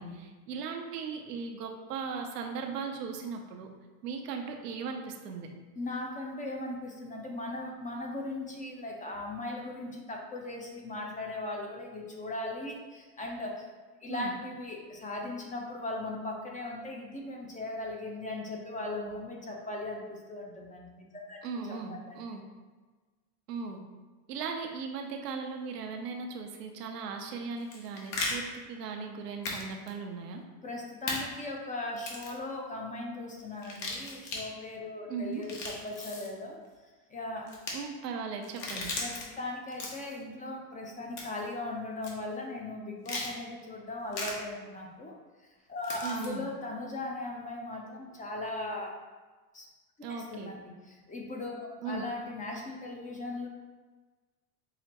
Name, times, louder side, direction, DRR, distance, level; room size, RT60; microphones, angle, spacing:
voice 1, 0.0-3.7 4.0-5.5 14.1-14.3 21.4-22.4 23.5-23.8 24.3-30.4 35.1-35.4 37.7-38.9 46.0-46.4 50.0-50.5 51.8-52.0, right 5 dB, 90° right, 3 dB, 0.7 m, -38 dB
voice 2, 5.8-13.7 14.0-21.4 21.7-21.8 22.1-22.2 30.6-36.6 37.1-37.5 38.7-45.1 45.7-48.9 49.5-49.7 50.1-53.5, left 2 dB, 15° left, 0 dB, 0.5 m, -38 dB
sound 1, 27.6-28.3 29.4-29.6 29.9-30.0 31.1-31.2 32.0-32.4 33.6-34.4 35.3-36.3 37.5-37.7 38.4-39.2 39.7-40.2 41.2-41.5 42.0-42.1 43.0-43.3 44.1-44.3 45.8-46.3, left 3 dB, 55° left, 1.1 m, -36 dB
5.7 x 2.1 x 2.8 m, 1.3 s
hypercardioid pair, 95°, 47 cm